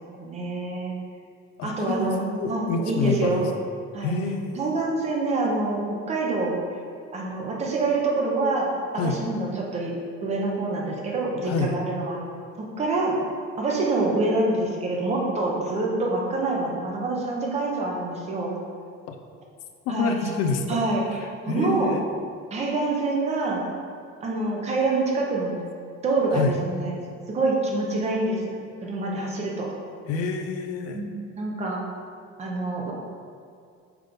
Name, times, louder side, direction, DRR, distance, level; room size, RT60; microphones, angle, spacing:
voice 1, 0.2-0.9 1.6-2.2 2.5-3.4 3.9-4.1 4.5-6.6 7.1-8.7 9.0-9.9 10.2-12.2 12.6-13.2 13.6-18.5 19.9-20.4 20.7-21.9 22.5-23.6 24.2-25.6 26.0-27.0 27.3-28.6 28.8-29.7 30.9-31.8 32.4-32.9, right 2 dB, 20° right, -1 dB, 0.8 m, -26 dB
voice 2, 1.6-3.5 4.0-4.7 9.0-9.2 11.4-11.7 19.1-19.2 19.9-20.8 21.5-22.0 26.3-26.5 30.1-31.0, left 4 dB, 55° left, 5 dB, 0.6 m, -27 dB
6.0 x 3.6 x 5.2 m, 2.3 s
cardioid pair, 180°, 29 cm